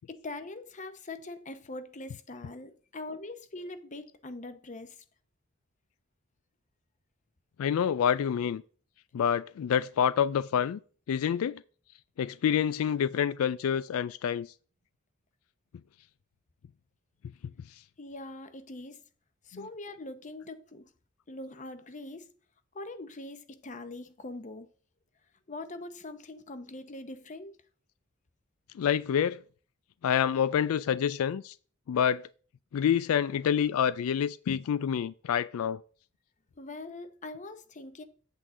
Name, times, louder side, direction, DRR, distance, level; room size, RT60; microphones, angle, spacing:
voice 1, 0.0-5.0 18.0-19.0 19.4-20.9 21.3-22.3 22.7-24.7 25.5-27.6 36.6-38.0, left 2 dB, 35° left, 0.8 m, -42 dB
voice 2, 7.6-8.6 9.1-10.8 11.1-11.6 12.2-14.5 19.5-19.7 28.7-29.4 30.0-31.5 31.9-32.2 32.7-35.8, left 8 dB, 85° left, 0.3 m, -27 dB
8.3 x 7.6 x 3.7 m
head